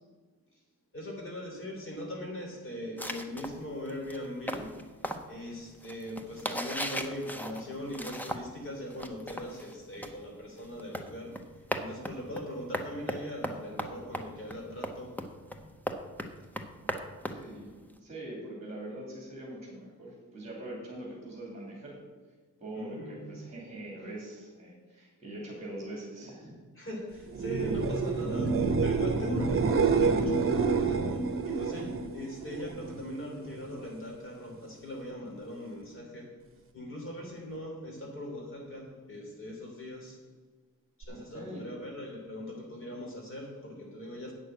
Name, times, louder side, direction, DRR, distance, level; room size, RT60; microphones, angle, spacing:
voice 1, 0.9-4.8 5.3-11.5 11.8-15.2 22.7-23.4 26.8-36.4 36.7-40.2 41.0-44.3, left 1 dB, 40° left, -1 dB, 2.9 m, -40 dB
sound 1, 3.0-8.6 8.9-18.0, equal, 5° left, 0.7 m, -38 dB
voice 2, 17.2-17.7 18.0-22.0 22.6-26.6 41.1-41.7, right 1 dB, 20° right, -3 dB, 2.7 m, -43 dB
sound 2, 27.3-33.0 33.4-34.0 41.0-41.1, right 4 dB, 40° right, 1.0 m, -28 dB
8.7 x 6.4 x 7.7 m, 1.4 s
wide cardioid pair, 150°, 33 cm